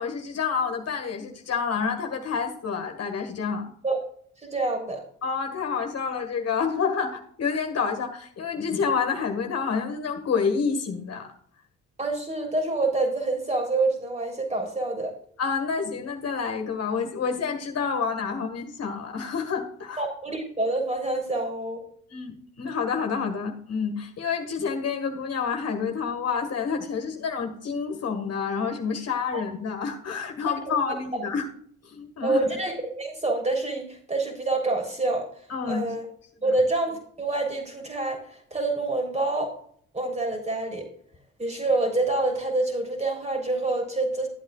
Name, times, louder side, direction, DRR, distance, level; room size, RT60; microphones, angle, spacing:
voice 1, 0.0-3.7 5.2-11.3 15.4-20.0 22.1-31.5 31.8-32.4 35.5-35.8 36.4-36.5, left 5 dB, 55° left, 4 dB, 1.8 m, -28 dB
voice 2, 4.4-5.0 12.0-15.1 20.0-21.8 29.3-29.4 31.1-31.2 32.2-35.3 35.6-36.1 36.4-39.6 39.9-40.9 41.4-44.3, right 2 dB, 20° right, 3 dB, 3.5 m, -27 dB
13.0 x 8.3 x 2.4 m, 0.62 s
cardioid pair, 90°, 30 cm